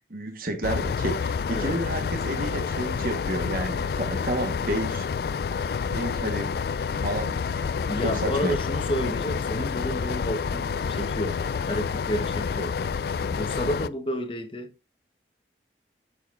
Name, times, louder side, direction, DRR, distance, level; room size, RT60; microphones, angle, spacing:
voice 1, 0.1-5.1 5.9-6.5 7.0-7.7 8.0-8.5, right 1 dB, 50° right, 1.3 m, -30 dB
sound 1, 0.6-13.9, left 6 dB, 60° left, 0.3 m, -28 dB
voice 2, 7.9-12.8 13.2-14.7, equal, 30° left, 1.0 m, -31 dB
8.0 x 6.5 x 2.5 m
head